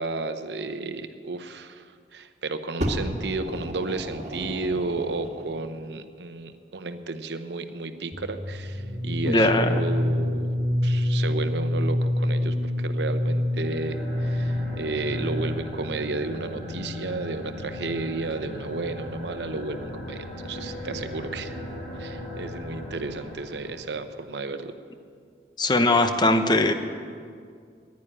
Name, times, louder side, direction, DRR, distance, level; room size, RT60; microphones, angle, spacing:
voice 1, 0.0-1.8 2.1-10.5 10.8-21.6 22.0-24.7, right 3 dB, 80° right, 9 dB, 0.8 m, -32 dB
Fire, 2.8-5.6 6.4-6.5, equal, 40° right, 1.7 m, -33 dB
sound 1, 8.1-15.8, left 1 dB, 15° right, 3.1 m, -27 dB
voice 2, 9.3-9.7 25.6-26.7, left 2 dB, 25° left, 8 dB, 0.7 m, -20 dB
sound 2, 13.5-23.9, left 1 dB, 50° left, 4.2 m, -38 dB
10.5 x 9.9 x 9.8 m, 2.2 s
head